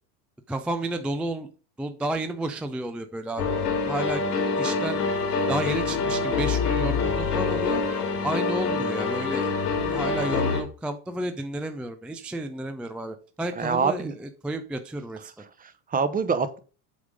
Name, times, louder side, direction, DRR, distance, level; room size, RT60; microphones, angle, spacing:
voice 1, 0.5-1.5 1.8-3.6 3.9-4.2 4.6-5.0 5.5-7.8 8.2-9.5 9.9-15.3, right 1 dB, 5° right, 0.3 m, -31 dB
sound 1, 3.4-10.6, left 4 dB, 85° left, 2.4 m, -26 dB
voice 2, 13.5-14.2 15.2-15.3 15.6-16.6, right 5 dB, 20° right, 0.8 m, -26 dB
8.1 x 3.5 x 5.1 m
hypercardioid pair, 100°, 45 cm